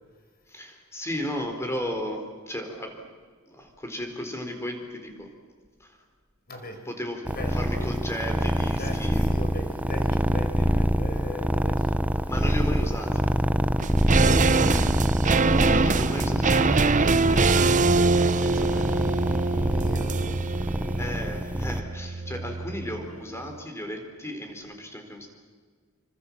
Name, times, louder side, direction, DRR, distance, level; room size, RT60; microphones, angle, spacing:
voice 1, 0.5-3.0 3.5-5.3 5.8-6.0 6.9-9.3 12.3-13.3 15.7-18.1 18.4-18.9 20.9-25.3, left 1 dB, 15° left, 4 dB, 4.3 m, -35 dB
voice 2, 6.5-6.9 7.3-7.9 8.6-11.9 14.1-14.9 19.7-20.4, left 1 dB, 45° left, 5 dB, 5.2 m, -39 dB
sound 1, 7.3-21.8, equal, 10° right, 0.9 m, -25 dB
sound 2, 13.8-23.2 23.4-23.5, right 3 dB, 35° right, 0.7 m, -24 dB
27.5 x 25.0 x 7.5 m, 1.5 s
head